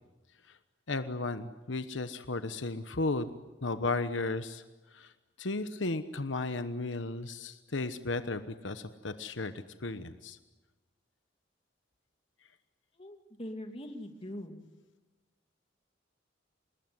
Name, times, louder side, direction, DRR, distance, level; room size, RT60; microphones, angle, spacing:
voice 1, 0.9-3.3 3.6-4.6 4.9-5.1 5.4-9.5 9.8-10.4, left 3 dB, 80° left, 10 dB, 1.1 m, -34 dB
voice 2, 13.0-14.6, left 1 dB, 30° left, 5 dB, 2.5 m, -42 dB
26.0 x 20.5 x 9.7 m, 1.2 s
head